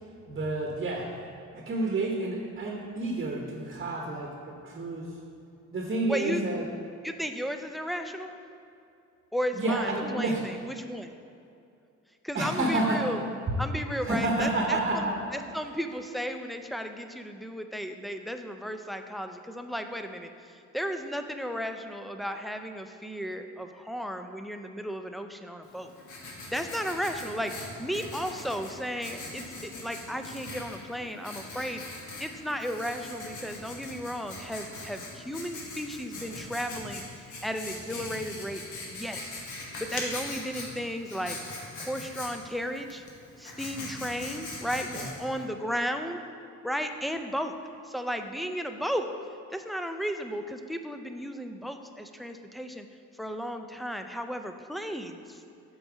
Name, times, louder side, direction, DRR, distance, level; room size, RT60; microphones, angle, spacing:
voice 1, 0.3-1.2 1.5-5.2 5.7-6.7 9.5-10.6 12.3-13.1 13.5-13.6 14.0-15.4 44.9-45.1, right 2 dB, 35° right, 0 dB, 0.9 m, -30 dB
voice 2, 6.1-6.4 7.0-8.3 9.3-11.1 12.2-13.2 13.6-15.0 15.3-20.3 20.7-25.9 26.5-31.8 32.2-37.0 37.4-38.6 38.9-39.4 39.8-41.4 41.8-43.0 43.4-46.2 46.6-47.5 47.8-49.1 49.5-52.9 53.2-55.4, equal, ahead, 6 dB, 0.4 m, -34 dB
Writing, 25.6-45.4, left 2 dB, 80° left, 1.4 m, -41 dB
7.5 x 4.0 x 4.9 m, 2.5 s
cardioid pair, 90°, 30 cm